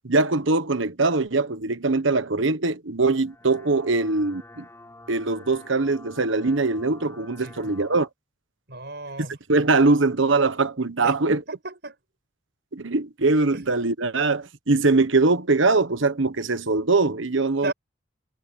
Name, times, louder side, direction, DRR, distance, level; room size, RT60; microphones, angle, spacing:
voice 1, 0.0-4.7 5.1-8.1 9.5-11.4 12.7-17.7, right 3 dB, 75° right, 1.3 m, -22 dB
sound 1, 3.1-8.1, left 2 dB, 15° left, 4.3 m, -48 dB
voice 2, 8.7-9.4 11.0-12.0 13.5-13.6 17.6-17.7, right 2 dB, 55° right, 5.7 m, -34 dB
head